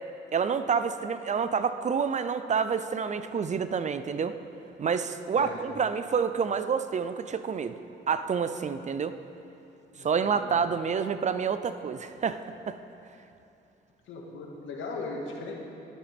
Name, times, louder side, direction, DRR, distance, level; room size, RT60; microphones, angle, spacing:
voice 1, 0.3-4.3 4.8-7.8 8.1-9.1 10.0-12.8, right 6 dB, 35° right, 11 dB, 0.5 m, -28 dB
voice 2, 9.9-10.5 14.1-15.5, left 3 dB, 75° left, -1 dB, 1.9 m, -38 dB
12.5 x 12.5 x 3.5 m, 2.8 s
cardioid pair, 90°, 20 cm